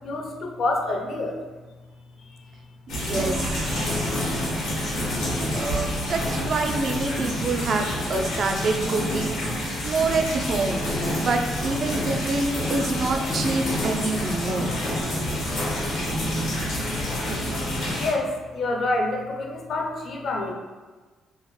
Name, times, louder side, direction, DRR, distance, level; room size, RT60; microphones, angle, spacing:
voice 1, 0.0-1.3 17.9-20.5, left 2 dB, 60° left, 1 dB, 0.5 m, -27 dB
sound 1, 2.9-18.1, left 1 dB, 90° left, 0.8 m, -28 dB
voice 2, 2.9-4.2 5.5-9.3 9.8-10.8 11.2-14.7, right 3 dB, 55° right, 4 dB, 0.3 m, -27 dB
2.8 x 2.0 x 3.0 m, 1.3 s
cardioid pair, 90°, 0 cm